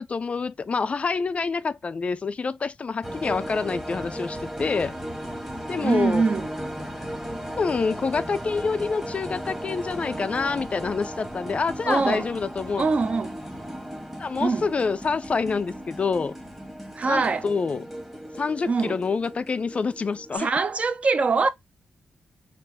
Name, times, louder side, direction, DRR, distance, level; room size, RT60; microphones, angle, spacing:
voice 1, 0.0-5.0 5.7-6.2 7.6-12.9 14.2-16.4 17.0-17.8 18.4-20.5, left 4 dB, 35° left, 0.3 m, -27 dB
sound 1, 3.0-20.4, equal, 5° right, 1.2 m, -36 dB
voice 2, 5.8-6.5 11.9-12.3 12.8-13.4 14.4-14.7 16.9-17.5 18.7-19.0 20.3-21.5, right 4 dB, 40° right, 0.5 m, -23 dB
4.4 x 2.4 x 3.4 m
wide cardioid pair, 125°, 3 cm